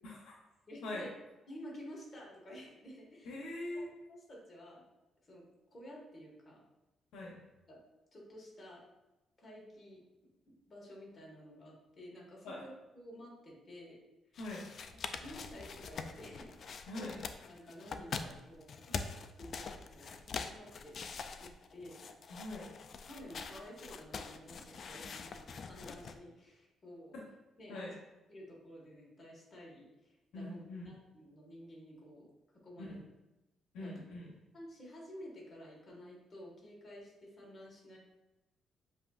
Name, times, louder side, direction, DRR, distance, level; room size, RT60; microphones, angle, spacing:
voice 1, 0.7-1.1 1.5-3.3 3.7-4.8 5.2-5.4 5.7-6.6 7.7-7.8 8.1-8.8 9.4-10.0 10.7-14.0 15.0-17.1 17.4-19.0 19.4-21.0 21.3-22.1 23.0-27.1 27.6-27.9 28.3-32.3 32.6-33.0 33.8-33.9 34.5-38.0, equal, 35° left, -3 dB, 1.6 m, -52 dB
voice 2, 3.2-3.9 7.1-7.4 12.4-12.6 14.4-14.7 16.9-17.2 22.3-22.7 27.7-27.9 30.3-30.9 32.8-33.0 33.7-34.3, left 1 dB, 85° left, -3 dB, 0.9 m, -42 dB
sound 1, 14.4-26.2, left 5 dB, 55° left, 0.3 m, -44 dB
7.7 x 2.7 x 2.5 m, 1.0 s
cardioid pair, 90°, 0 cm